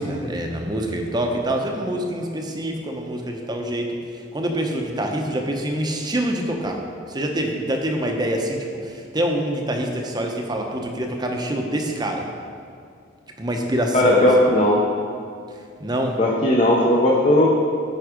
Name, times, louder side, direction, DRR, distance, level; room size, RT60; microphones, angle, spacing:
voice 1, 0.0-6.8 7.1-12.3 13.4-14.3 15.8-16.2, right 1 dB, 20° right, 2 dB, 0.7 m, -25 dB
voice 2, 13.9-14.8 16.2-17.5, left 1 dB, 35° left, -3 dB, 0.7 m, -17 dB
9.3 x 4.7 x 5.0 m, 2.4 s
head